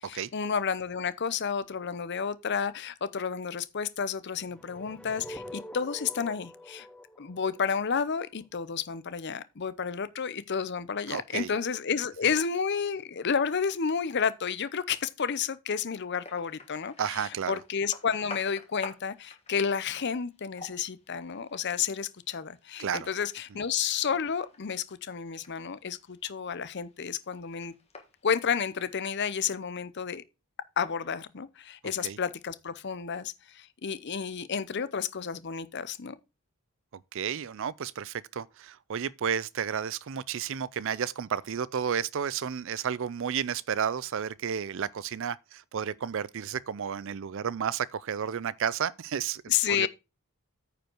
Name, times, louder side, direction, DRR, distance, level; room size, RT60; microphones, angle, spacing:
voice 1, 0.0-6.9 7.2-27.7 28.2-30.2 30.8-36.2 49.5-49.9, left 6 dB, 50° left, 0.6 m, -31 dB
sound 1, 4.4-8.5, left 1 dB, 5° left, 0.4 m, -45 dB
voice 2, 11.1-11.5 17.0-17.6 22.8-23.1 32.0-32.2 37.1-49.9, right 7 dB, 60° right, 0.4 m, -32 dB
sound 2, 16.2-29.5, left 3 dB, 30° left, 1.5 m, -51 dB
9.2 x 5.1 x 4.5 m
head